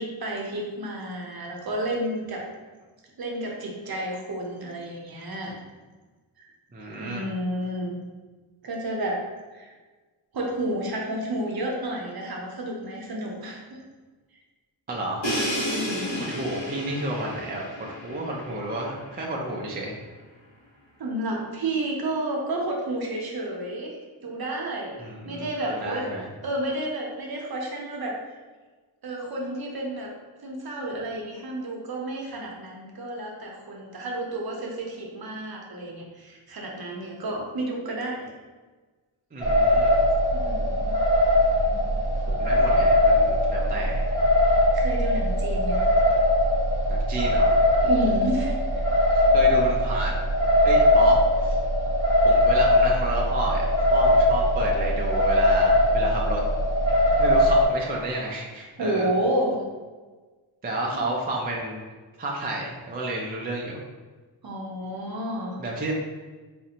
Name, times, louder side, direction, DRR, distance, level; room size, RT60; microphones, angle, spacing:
voice 1, 0.0-2.5 3.2-5.5 6.4-6.5 7.0-7.9 8.6-9.2 9.5-9.7 10.3-13.8 15.7-16.3 21.0-26.0 26.4-28.2 29.0-30.1 30.4-38.3 40.3-41.0 44.7-45.8 47.8-48.8 49.9-50.1 58.8-59.6 60.9-61.0 64.4-65.6, right 1 dB, 50° right, -1 dB, 0.7 m, -31 dB
voice 2, 6.7-7.3 14.9-15.4 16.1-17.7 18.0-20.0 25.0-26.3 39.3-40.0 42.3-44.1 46.9-47.6 49.3-50.3 50.6-51.6 52.2-53.6 53.9-56.4 57.0-59.1 60.6-61.8 62.2-63.8 65.6-65.9, right 1 dB, 20° right, -2 dB, 0.4 m, -31 dB
Crash cymbal, 15.2-19.0, equal, 65° left, 1.2 m, -31 dB
sound 1, 39.4-57.6, left 1 dB, 10° left, 1.0 m, -21 dB
4.2 x 2.5 x 2.8 m, 1.3 s
wide cardioid pair, 150°, 49 cm